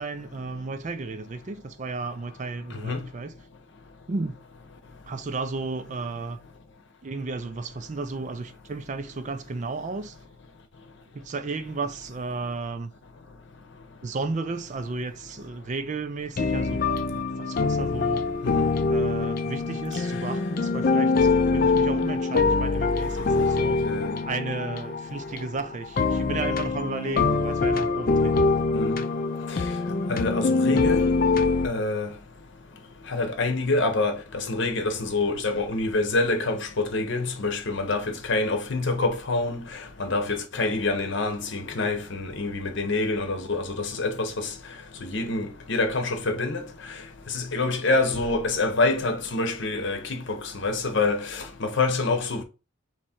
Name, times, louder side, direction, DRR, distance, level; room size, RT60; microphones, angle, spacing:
voice 1, 0.0-3.3 4.1-4.4 5.1-6.4 7.0-10.2 11.1-12.9 14.0-16.8 17.1-18.4 18.9-23.9 24.3-28.5, right 3 dB, 35° right, 0.4 m, -33 dB
sound 1, 16.4-31.7, left 3 dB, 45° left, 0.5 m, -24 dB
voice 2, 23.8-24.2 28.7-29.0 29.5-29.6 30.1-31.1 31.6-32.1 33.1-44.5 45.0-46.6 47.3-52.4, left 3 dB, 60° left, 0.9 m, -26 dB
3.6 x 3.1 x 4.3 m
head